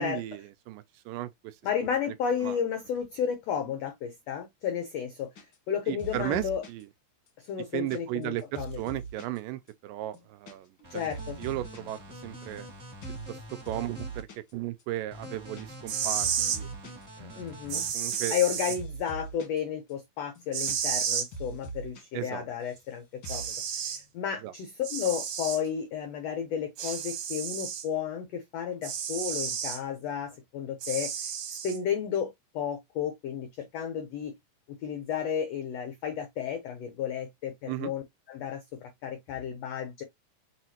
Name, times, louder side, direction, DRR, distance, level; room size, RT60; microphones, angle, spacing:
voice 1, 0.0-1.6 2.4-2.6 5.9-6.9 7.7-10.7 10.9-11.0 11.4-12.7 13.3-16.7 17.2-17.4 17.7-18.4 22.1-22.5 24.4-24.5 37.7-37.9, right 15 dB, 80° right, 2.1 m, -35 dB
voice 2, 1.6-5.3 5.7-6.6 7.4-8.8 10.9-11.4 17.4-17.9 18.3-23.5 23.8-31.1 31.5-34.3 34.7-40.0, left 8 dB, 85° left, 1.4 m, -32 dB
sound 1, 5.3-5.7 6.0-6.8 7.3-9.4 9.7-9.8 10.0-10.5 10.8-11.8 12.1-12.7 13.0-13.3 13.6-14.5 14.8-14.9 15.1-15.9 16.2-17.0 17.5-19.6 19.9-20.0 20.2-21.0 21.3-22.0 22.3-22.9 23.2-23.5, right 3 dB, 60° left, 1.2 m, -42 dB
sound 2, 10.8-14.2 15.1-17.9, equal, 35° right, 1.2 m, -45 dB
sound 3, 15.7-16.6 17.7-18.8 20.5-21.3 22.8-22.9 23.2-24.0 24.8-25.6 26.8-27.9 28.8-29.8 30.8-31.8, right 8 dB, 65° right, 2.3 m, -31 dB
6.1 x 2.8 x 2.8 m
omnidirectional pair, 4.0 m